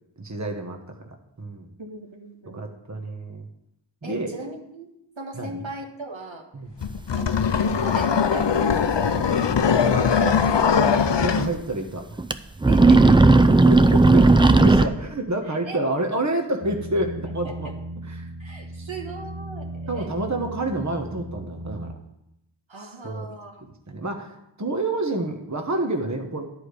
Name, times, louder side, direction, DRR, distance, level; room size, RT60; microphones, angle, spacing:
voice 1, 0.2-0.8 1.0-1.7 2.5-3.5 4.0-4.3 5.4-5.6 6.5-6.7 11.1-12.1 13.7-17.7 18.1-18.3 18.8-18.9 19.9-21.9 22.8-23.3 23.9-26.4, right 2 dB, 35° right, 3 dB, 1.2 m, -28 dB
voice 2, 1.8-2.8 4.0-4.9 5.2-6.5 7.2-11.1 12.7-13.4 14.8-14.9 15.5-15.8 17.4-17.7 18.4-20.3 22.7-23.6, right 2 dB, 80° right, 1 dB, 1.6 m, -37 dB
sound 1, 6.8-11.5, left 6 dB, 65° left, 0.6 m, -21 dB
sound 2, 8.7-8.8 9.2-9.3 10.8-10.9 11.2-11.3 12.2-12.4 12.6-14.9, right 3 dB, 10° right, 0.4 m, -14 dB
sound 3, 16.6-21.9, right 1 dB, 55° right, 0.9 m, -36 dB
11.0 x 4.9 x 6.7 m, 0.83 s
wide cardioid pair, 50°, 46 cm